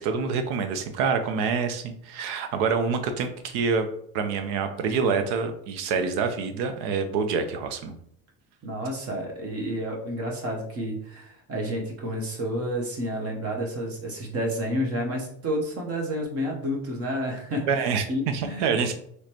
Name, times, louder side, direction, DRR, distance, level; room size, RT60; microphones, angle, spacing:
voice 1, 0.0-3.9 4.1-7.9 17.7-18.9, right 5 dB, 85° right, 8 dB, 0.8 m, -26 dB
voice 2, 8.6-18.9, equal, 35° right, 0 dB, 1.0 m, -30 dB
5.1 x 3.2 x 2.9 m, 0.68 s
cardioid pair, 155°, 40 cm